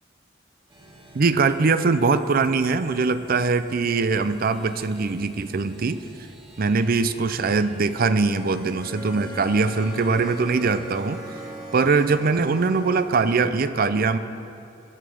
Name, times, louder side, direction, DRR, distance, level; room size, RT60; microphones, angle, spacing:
sound 1, 0.7-13.4, right 1 dB, 25° right, 2.4 m, -43 dB
voice 1, 1.1-6.0 6.6-11.2 11.7-14.2, right 4 dB, 50° right, 12 dB, 0.5 m, -22 dB
20.0 x 6.9 x 6.3 m, 2.6 s
head